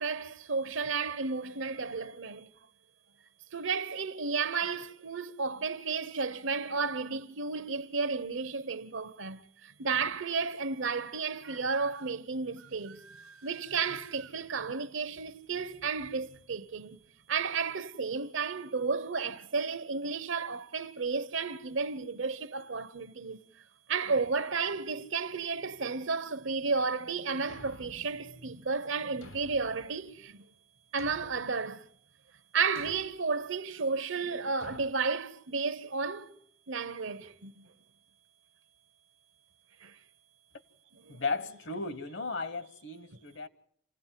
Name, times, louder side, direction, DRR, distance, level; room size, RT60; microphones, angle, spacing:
voice 1, 0.0-2.5 3.5-13.0 13.4-17.0 17.3-23.4 23.9-30.4 30.9-31.9 32.5-36.3 36.7-37.7 39.8-40.0 40.9-41.2, right 4 dB, 65° right, 0.9 m, -33 dB
sound 1, 11.9-12.1 12.6-14.3, right 5 dB, 90° right, 1.0 m, -54 dB
Thump thud, 27.5-28.1 29.2-29.8 31.0-31.5 32.7-33.2 34.6-34.9, left 2 dB, 80° left, 1.4 m, -51 dB
voice 2, 41.1-43.5, left 3 dB, 55° left, 1.1 m, -35 dB
28.0 x 16.5 x 7.5 m
head